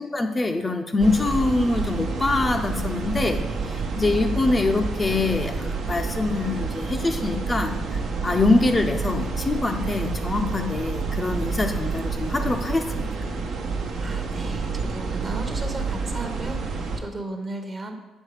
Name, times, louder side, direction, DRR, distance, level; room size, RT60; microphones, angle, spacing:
voice 1, 0.0-5.6 5.8-13.1, left 3 dB, 25° left, 5 dB, 0.5 m, -24 dB
sound 1, 1.0-17.0, right 4 dB, 75° right, 1.0 m, -29 dB
voice 2, 14.0-17.9, right 2 dB, 35° right, 5 dB, 0.9 m, -35 dB
7.2 x 4.1 x 4.9 m, 1.1 s
cardioid pair, 90°, 0 cm